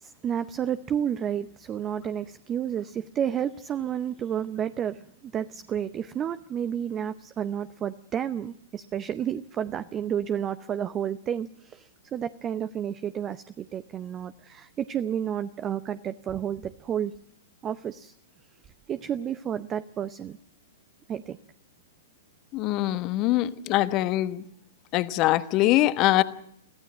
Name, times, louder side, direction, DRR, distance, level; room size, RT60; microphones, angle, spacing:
voice 1, 0.0-17.1 17.6-18.1 18.9-20.4 21.1-21.4, right 9 dB, 20° right, 13 dB, 0.7 m, -31 dB
voice 2, 22.5-24.4 24.9-26.2, left 16 dB, 35° left, 13 dB, 1.1 m, -23 dB
24.0 x 15.5 x 7.5 m, 0.73 s
figure-of-eight pair, 110°, 0 cm